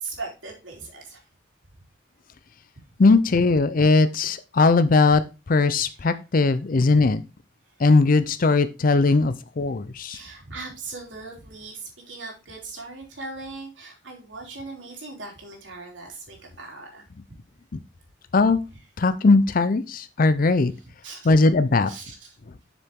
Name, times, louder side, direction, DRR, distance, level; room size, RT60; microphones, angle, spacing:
voice 1, 0.0-1.2 10.0-17.0 20.8-21.3 21.9-22.4, right 3 dB, 75° right, 0 dB, 3.2 m, -39 dB
voice 2, 3.0-5.2 5.5-7.2 7.8-10.2 18.3-18.6 19.0-20.7 21.3-21.9, left 3 dB, 45° left, 12 dB, 0.5 m, -19 dB
7.2 x 6.8 x 3.6 m, 0.29 s
head